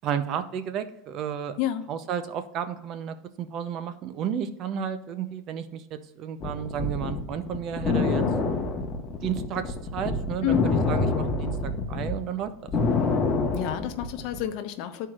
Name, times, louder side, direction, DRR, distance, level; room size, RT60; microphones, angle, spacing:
voice 1, 0.0-1.6 1.9-8.2 9.2-12.7, right 8 dB, 40° right, 10 dB, 0.6 m, -32 dB
sound 1, 6.4-12.1 12.5-14.4, left 3 dB, 25° left, 1.2 m, -26 dB
voice 2, 13.5-15.1, left 11 dB, 55° left, 8 dB, 0.9 m, -29 dB
13.0 x 4.6 x 2.4 m, 0.86 s
supercardioid pair, 140°, 0 cm